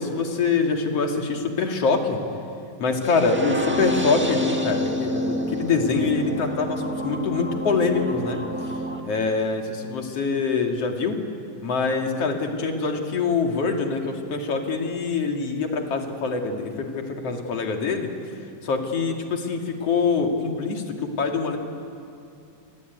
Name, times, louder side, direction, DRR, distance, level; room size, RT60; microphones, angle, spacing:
voice 1, 0.0-2.2 2.8-8.4 9.0-9.6 9.9-11.2 11.6-18.1 18.6-21.6, left 4 dB, 50° left, 3 dB, 3.2 m, -24 dB
sound 1, 3.0-9.0, equal, 15° right, 0.4 m, -28 dB
27.5 x 22.5 x 9.5 m, 2.7 s
omnidirectional pair, 3.6 m